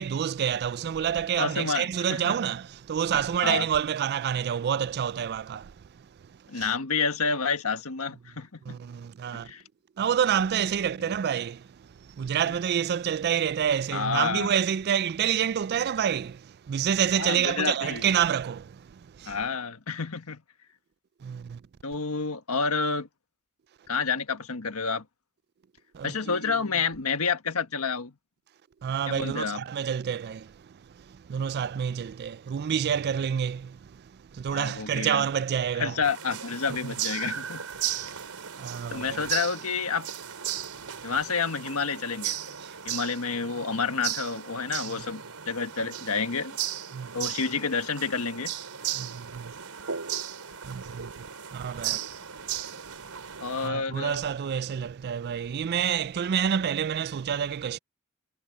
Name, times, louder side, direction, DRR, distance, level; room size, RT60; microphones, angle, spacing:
voice 1, 0.0-5.8 6.5-6.7 8.7-9.5 10.0-19.4 21.2-21.6 25.9-26.6 28.8-36.0 36.8-36.9 37.9-39.3 40.6-41.1 42.6-42.7 46.9-47.3 48.9-49.5 50.6-51.3 51.5-52.0 53.5-57.8, right 8 dB, 45° right, 0.3 m, -28 dB
voice 2, 1.4-2.3 3.4-3.7 6.5-8.8 9.3-9.6 13.9-14.5 17.1-18.1 19.3-20.4 21.8-23.1 23.9-25.1 26.0-28.1 29.1-29.6 34.5-35.3 35.7-38.1 38.9-40.1 41.0-42.4 42.8-46.6 47.1-48.5 53.4-54.2, left 5 dB, 85° left, 1.5 m, -29 dB
sound 1, 36.0-53.7, right 10 dB, 85° right, 3.7 m, -36 dB
head